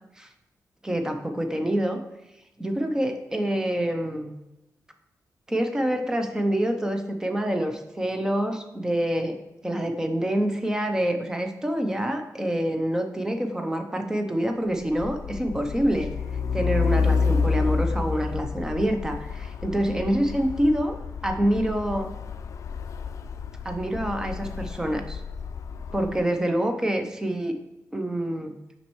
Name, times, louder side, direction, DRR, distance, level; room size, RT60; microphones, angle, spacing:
voice 1, 0.8-2.0 2.6-4.3 5.5-9.4 9.6-16.1 16.5-21.0 21.2-22.1 23.6-25.2 25.9-27.5 27.9-28.5, right 1 dB, 10° right, 5 dB, 0.6 m, -26 dB
Truck, 14.8-26.2, left 5 dB, 55° left, 0.3 m, -29 dB
7.2 x 5.3 x 3.1 m, 0.94 s
wide cardioid pair, 165°, 6 cm